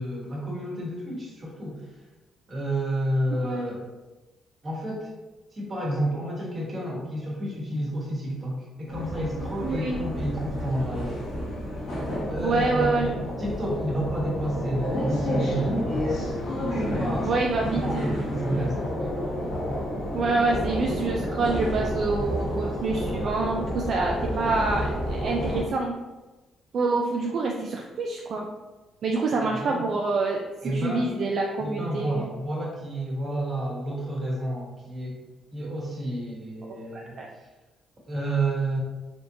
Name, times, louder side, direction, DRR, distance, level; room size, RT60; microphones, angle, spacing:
voice 1, 0.0-1.9 2.5-3.8 4.6-5.1 5.5-11.2 12.3-13.0 13.4-16.4 16.8-19.2 22.1-22.2 29.4-29.8 30.6-31.1 31.6-35.2 35.5-37.2 38.1-38.8, right 1 dB, 35° right, -4 dB, 1.2 m, -30 dB
sound 1, 8.9-25.6, equal, 80° left, 1.3 m, -30 dB
voice 2, 9.6-10.0 12.4-13.1 17.2-18.2 20.1-26.0 26.7-28.5 29.0-30.4 30.7-32.3 36.6-37.3, right 3 dB, 60° right, 0 dB, 0.3 m, -27 dB
3.5 x 2.5 x 2.7 m, 1.1 s
cardioid pair, 90°, 0 cm